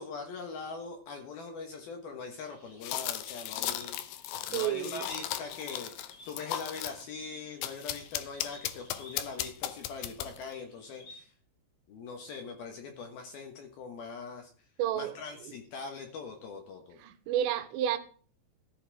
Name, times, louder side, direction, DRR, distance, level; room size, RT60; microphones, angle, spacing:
voice 1, 0.0-11.3 11.9-14.7 14.9-17.0, left 4 dB, 65° left, 2.6 m, -42 dB
sound 1, 2.4-11.2, left 2 dB, 40° left, 5.0 m, -57 dB
sound 2, 2.8-7.0 7.6-10.5, left 12 dB, 85° left, 2.3 m, -36 dB
voice 2, 4.5-5.0 14.8-15.1 17.0-18.0, right 11 dB, 85° right, 3.6 m, -30 dB
13.5 x 13.5 x 3.5 m
omnidirectional pair, 5.8 m